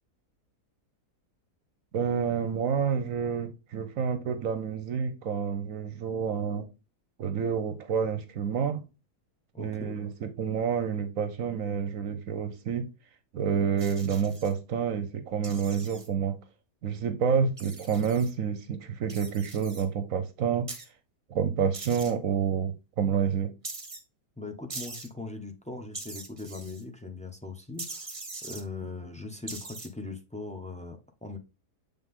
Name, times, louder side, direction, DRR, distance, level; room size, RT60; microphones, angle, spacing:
voice 1, 1.9-6.7 7.2-8.8 9.6-12.9 13.3-16.4 16.8-20.7 21.3-23.5, right 7 dB, 65° right, 1.0 m, -29 dB
voice 2, 9.5-10.0 24.4-28.1 28.4-31.4, left 3 dB, 10° left, 0.4 m, -40 dB
sound 1, 13.8-14.5 15.4-16.1 17.6-18.3 19.1-19.8 20.7-20.8 21.7-22.1 23.6-24.0 24.7-25.1 25.9-26.8 27.8-28.6 29.5-29.9, right 3 dB, 25° right, 1.0 m, -41 dB
7.7 x 3.6 x 3.6 m
omnidirectional pair, 1.7 m